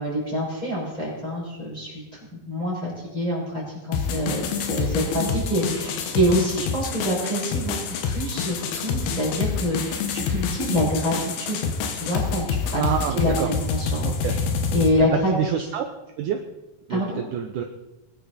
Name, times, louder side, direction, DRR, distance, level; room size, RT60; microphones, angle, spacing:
voice 1, 0.0-2.0 2.5-7.7 8.0-12.8 13.1-14.4 14.7-15.3 16.9-17.2, equal, 10° left, -6 dB, 6.4 m, -26 dB
sound 1, 3.9-14.9, left 5 dB, 90° left, 3.2 m, -27 dB
voice 2, 12.8-13.5 14.0-14.4 15.1-15.9 16.2-16.4 16.9-17.6, right 9 dB, 70° right, 4 dB, 2.1 m, -27 dB
22.0 x 10.5 x 4.3 m, 1.0 s
omnidirectional pair, 4.3 m